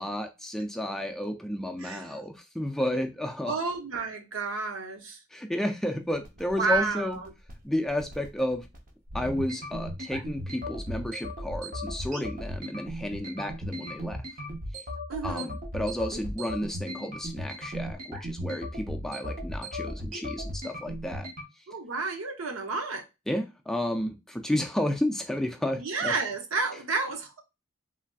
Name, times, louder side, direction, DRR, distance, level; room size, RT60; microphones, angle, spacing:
voice 1, 0.0-3.6 5.3-7.2 7.6-8.7 9.1-14.2 15.2-21.3 23.3-26.1, left 1 dB, ahead, 0.3 m, -32 dB
voice 2, 1.8-2.1 3.4-5.2 6.6-7.3 15.1-15.5 21.7-23.0 25.8-27.4, right 4 dB, 85° right, 0.7 m, -31 dB
sound 1, 6.2-21.4, equal, 45° right, 0.7 m, -37 dB
3.2 x 2.6 x 2.3 m
head